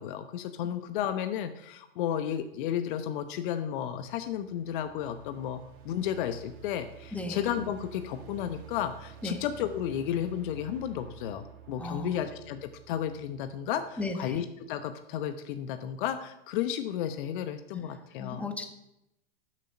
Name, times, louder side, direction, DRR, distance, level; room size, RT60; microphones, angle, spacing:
voice 1, 0.0-18.5, left 10 dB, 55° left, 9 dB, 1.0 m, -33 dB
sound 1, 3.9-13.9, right 8 dB, 55° right, 2.5 m, -50 dB
voice 2, 7.1-7.4 9.2-9.4 11.8-12.2 14.0-14.4 17.7-18.7, left 2 dB, 5° left, 5 dB, 1.4 m, -36 dB
12.0 x 7.6 x 5.3 m, 0.83 s
hypercardioid pair, 105°, 31 cm